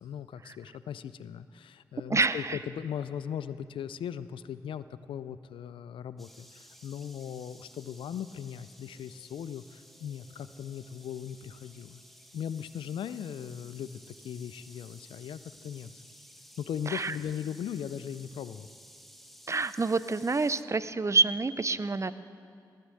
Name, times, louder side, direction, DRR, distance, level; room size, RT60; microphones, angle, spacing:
voice 1, 0.0-12.0 12.3-16.0 16.6-18.7, left 9 dB, 80° left, 15 dB, 0.4 m, -38 dB
voice 2, 2.1-2.6 16.9-17.2 19.5-22.1, right 3 dB, 35° right, 15 dB, 0.6 m, -27 dB
sound 1, 6.2-20.6, equal, ahead, 1.3 m, -55 dB
18.0 x 6.7 x 7.7 m, 2.4 s
supercardioid pair, 40°, 9 cm